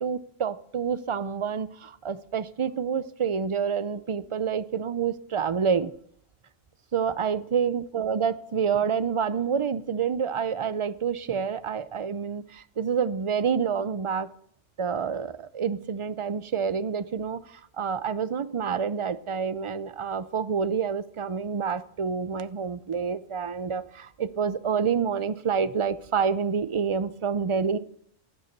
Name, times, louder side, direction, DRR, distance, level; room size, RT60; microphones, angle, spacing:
voice 1, 0.0-5.9 6.9-14.3 14.8-27.8, right 6 dB, 50° right, 14 dB, 0.3 m, -28 dB
12.0 x 9.6 x 6.7 m, 0.65 s
omnidirectional pair, 1.3 m